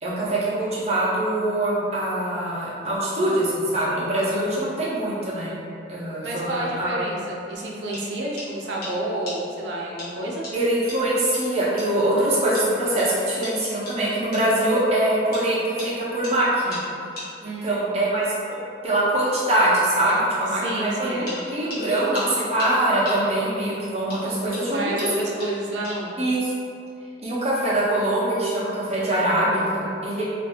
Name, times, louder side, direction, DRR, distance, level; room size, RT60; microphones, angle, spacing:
voice 1, 0.0-5.5 5.9-7.1 10.5-16.8 17.4-18.3 18.8-24.9 26.2-26.5 27.2-30.2, right 1 dB, 35° right, -8 dB, 0.6 m, -23 dB
voice 2, 6.2-10.5 17.4-17.9 20.5-21.3 24.6-26.1, right 1 dB, 80° right, -3 dB, 0.5 m, -30 dB
sound 1, 7.5-7.6 7.9-8.0 8.4-8.5 8.8-8.9 9.3-9.4 10.0-10.1 10.4-10.5 10.9-11.0 11.3-11.4 11.8-11.9 12.5-12.7 13.0-13.1 13.4-13.5 13.9-14.0 14.3-14.4 15.3-15.5 15.8-15.9 16.2-16.3 16.7-16.8 17.2-17.3 21.3-23.6 24.1-26.2, left 2 dB, 55° left, 0.9 m, -38 dB
2.5 x 2.4 x 2.7 m, 2.5 s
head